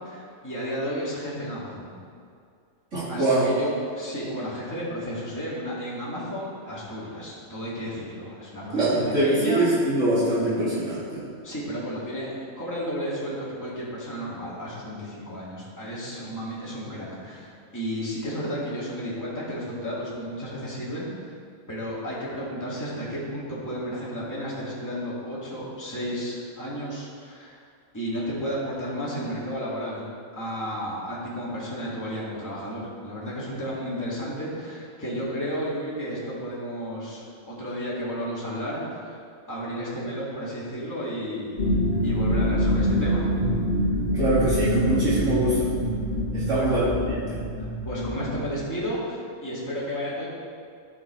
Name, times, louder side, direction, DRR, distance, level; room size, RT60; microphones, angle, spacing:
voice 1, 0.0-1.9 3.1-9.6 11.4-21.3 21.7-27.6 27.9-30.0 30.3-39.2 39.5-41.6 42.0-43.2 46.5-46.8 47.6-50.3, equal, 15° left, -8 dB, 2.3 m, -32 dB
voice 2, 2.9-3.4 8.7-11.2 44.1-45.7 46.3-47.4, right 1 dB, 60° right, -10 dB, 2.7 m, -23 dB
sound 1, 41.6-48.5, equal, 35° left, 2.2 m, -25 dB
13.5 x 5.8 x 4.6 m, 2.3 s
omnidirectional pair, 1.4 m